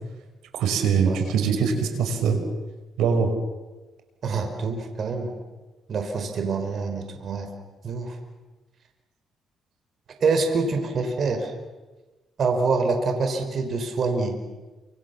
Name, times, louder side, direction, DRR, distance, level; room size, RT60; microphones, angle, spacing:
voice 1, 0.5-2.4 3.0-3.3, right 6 dB, 90° right, 6 dB, 5.7 m, -22 dB
voice 2, 4.2-5.3 5.9-7.5 7.8-8.2 10.2-11.5 12.4-14.4, right 4 dB, 55° right, 5 dB, 5.3 m, -25 dB
29.5 x 27.5 x 7.3 m, 1.2 s
cardioid pair, 90°, 0 cm